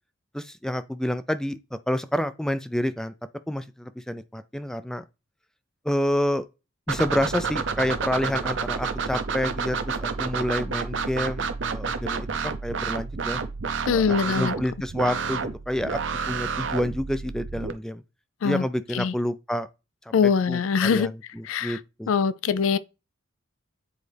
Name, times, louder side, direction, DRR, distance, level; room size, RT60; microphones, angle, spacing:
voice 1, 0.3-3.1 3.5-5.0 5.8-6.5 6.9-13.4 13.8-16.0 16.3-18.0 18.4-19.7 20.5-22.1, left 1 dB, 5° left, 0.3 m, -28 dB
sound 1, 6.9-17.7, right 5 dB, 65° right, 0.6 m, -30 dB
voice 2, 13.9-14.5 18.4-18.6 18.9-19.1 20.1-21.1 21.5-21.8 22.1-22.8, left 6 dB, 80° left, 0.4 m, -23 dB
8.5 x 4.0 x 3.4 m
head